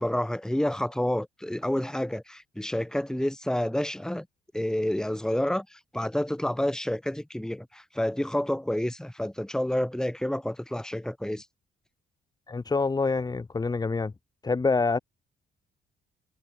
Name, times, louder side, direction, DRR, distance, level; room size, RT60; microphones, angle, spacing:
voice 1, 0.0-4.3 4.5-11.4, left 1 dB, 5° left, 2.1 m, -29 dB
voice 2, 12.5-14.1 14.4-15.0, left 4 dB, 20° left, 0.7 m, -26 dB
cardioid pair, 90°, 20 cm